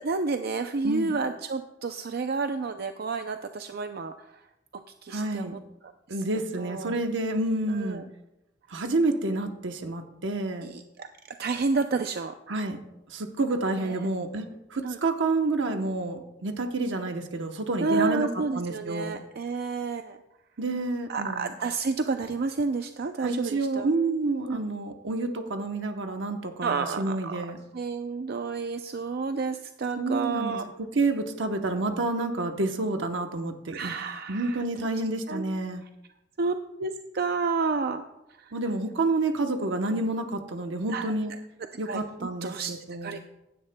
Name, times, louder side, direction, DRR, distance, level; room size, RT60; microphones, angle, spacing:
voice 1, 0.0-4.1 5.0-5.6 6.6-6.9 7.7-8.0 10.6-11.1 11.4-12.3 13.8-14.0 14.8-15.0 17.8-20.2 21.1-23.9 24.5-24.6 26.6-27.4 27.7-30.7 33.7-34.6 35.3-35.6 36.4-38.0 38.4-38.5 40.9-41.1 41.9-42.7 43.0-43.2, right 4 dB, 55° right, 7 dB, 0.5 m, -30 dB
voice 2, 5.1-5.6 6.1-8.0 8.7-10.7 12.5-12.8 13.1-18.3 18.5-19.2 20.6-21.5 23.2-27.6 30.0-33.9 34.3-35.8 38.5-41.3 41.8-43.2, right 2 dB, 85° right, 5 dB, 0.9 m, -29 dB
16.0 x 11.0 x 2.2 m, 0.91 s
head